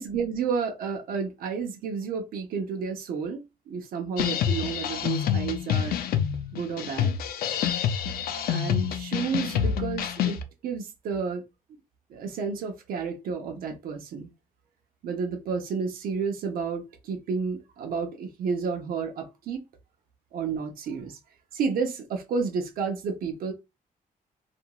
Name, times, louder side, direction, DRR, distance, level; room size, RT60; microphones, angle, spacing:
voice 1, 0.0-6.0 6.5-7.2 8.5-11.4 12.1-14.3 15.0-19.6 20.3-21.2 21.5-23.5, right 5 dB, 75° right, 0.7 m, -31 dB
sound 1, 4.2-10.4, left 9 dB, 85° left, 0.4 m, -27 dB
2.9 x 2.5 x 2.3 m
cardioid pair, 150°, 15 cm